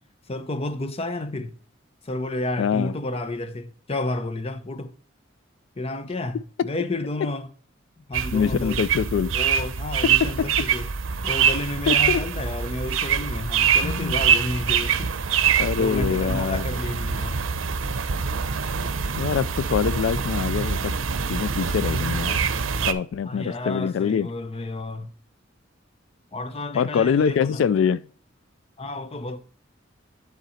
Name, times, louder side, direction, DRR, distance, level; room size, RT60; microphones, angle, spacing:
voice 1, 0.3-1.6 2.0-4.9 5.8-7.5 8.0-8.8 9.3-10.9 11.2-15.2 15.8-17.4 23.2-25.1 26.3-27.6 28.8-29.4, left 2 dB, 30° left, 0.6 m, -31 dB
voice 2, 2.6-2.9 6.6-6.7 8.3-9.3 10.0-10.5 11.9-12.2 13.8-14.1 15.6-16.7 19.2-20.9 21.3-22.4 22.9-24.3 26.7-28.0, left 7 dB, 70° left, 0.3 m, -24 dB
sound 1, 8.1-22.9, right 7 dB, 80° right, 0.7 m, -24 dB
10.5 x 3.9 x 4.2 m
head